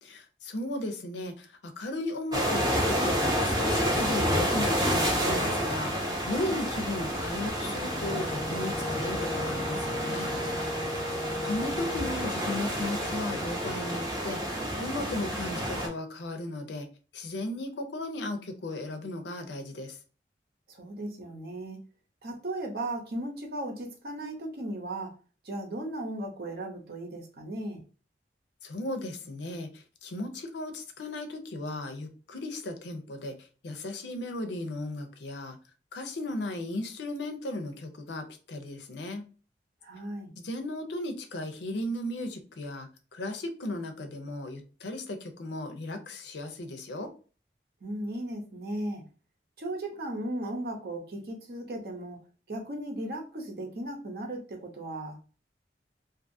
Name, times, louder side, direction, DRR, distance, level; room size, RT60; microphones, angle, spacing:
voice 1, 0.0-5.9 6.3-10.3 11.4-14.4 14.8-16.9 17.1-20.0 28.6-35.6 35.9-39.2 40.4-47.1, left 1 dB, 85° left, 6 dB, 0.6 m, -36 dB
sound 1, 2.3-15.9, equal, 20° right, 0.7 m, -29 dB
Wind instrument woodwind instrument, 7.7-12.3, left 1 dB, 20° left, 0.4 m, -37 dB
voice 2, 11.1-12.1 20.7-21.8 22.2-25.2 25.4-27.8 39.8-40.3 47.8-49.0 49.6-52.2 52.5-55.3, right 1 dB, 60° right, 1 dB, 0.7 m, -36 dB
2.6 x 2.4 x 2.6 m, 0.36 s
head